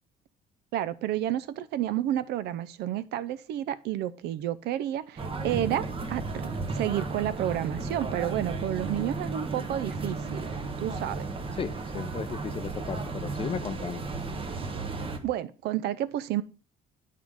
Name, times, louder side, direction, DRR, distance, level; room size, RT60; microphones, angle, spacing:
voice 1, 0.7-6.5 6.7-10.5 10.8-11.3 15.2-16.4, right 12 dB, 75° right, 0.6 m, -30 dB
sound 1, 5.2-15.2, right 3 dB, 30° right, 1.2 m, -34 dB
voice 2, 11.5-14.1, left 7 dB, 35° left, 0.4 m, -35 dB
9.3 x 3.8 x 4.9 m
cardioid pair, 110°, 17 cm